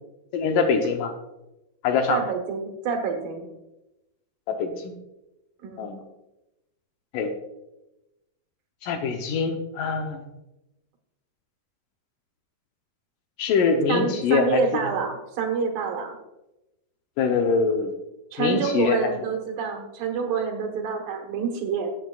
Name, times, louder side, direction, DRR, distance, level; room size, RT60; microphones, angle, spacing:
voice 1, 0.3-1.1 1.8-2.2 4.5-4.9 5.8-6.0 7.1-7.3 8.8-10.2 13.4-14.9 17.2-17.9 18.4-19.0, left 5 dB, 75° left, 5 dB, 2.1 m, -24 dB
voice 2, 2.1-3.5 5.6-5.9 13.9-16.2 18.3-21.9, right 5 dB, 75° right, 3 dB, 2.9 m, -27 dB
14.5 x 8.0 x 2.3 m, 0.95 s
omnidirectional pair, 4.2 m